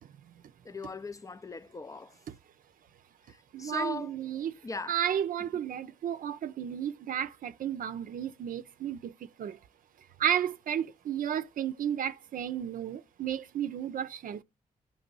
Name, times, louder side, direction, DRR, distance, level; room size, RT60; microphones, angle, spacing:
voice 1, 0.6-2.2 3.3-4.2 4.6-5.0 5.4-5.5, left 3 dB, 20° left, 0.4 m, -39 dB
voice 2, 3.5-4.5 4.9-9.1 9.4-9.6 10.2-14.4, right 9 dB, 70° right, 0.5 m, -33 dB
9.6 x 3.2 x 5.3 m
cardioid pair, 80°, 15 cm